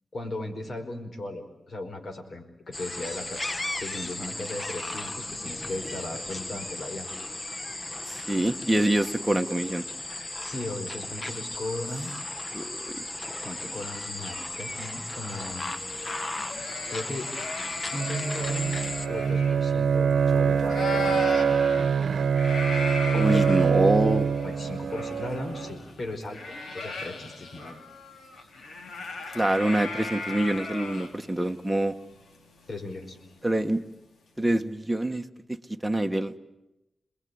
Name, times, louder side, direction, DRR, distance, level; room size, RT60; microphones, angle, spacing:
voice 1, 0.1-3.4 3.8-7.1 10.4-12.1 13.4-15.7 16.9-17.3 17.9-21.3 23.1-23.9 24.4-26.4 26.7-27.7 32.7-33.2, left 2 dB, 55° left, 5 dB, 5.0 m, -37 dB
sound 1, 2.7-19.1, left 2 dB, 30° left, 1.4 m, -35 dB
voice 2, 8.1-9.8 12.5-13.0 23.1-24.3 29.3-31.9 33.4-33.8 34.4-35.6 35.8-36.4, right 1 dB, 5° right, 4 dB, 1.6 m, -25 dB
sound 2, 15.6-20.3 20.6-33.5, left 3 dB, 85° left, 3.7 m, -38 dB
Bowed string instrument, 17.9-25.8, right 6 dB, 85° right, 0.9 m, -24 dB
28.5 x 21.0 x 9.7 m, 0.94 s
wide cardioid pair, 90°, 0 cm